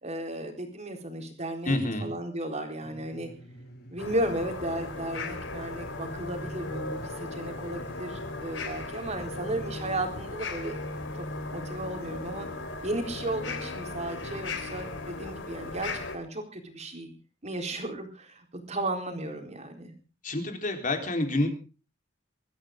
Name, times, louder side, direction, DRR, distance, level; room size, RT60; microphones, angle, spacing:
voice 1, 0.0-3.3 3.9-10.8 11.5-12.5 12.8-17.1 17.4-19.9, right 1 dB, 35° right, 4 dB, 4.2 m, -34 dB
voice 2, 1.7-2.1 20.2-21.5, left 2 dB, 45° left, 5 dB, 4.0 m, -28 dB
sound 1, 2.8-10.4, right 1 dB, 60° left, 6.3 m, -50 dB
sound 2, 4.0-16.2, left 2 dB, 80° left, 3.5 m, -37 dB
22.5 x 14.0 x 3.8 m, 0.34 s
head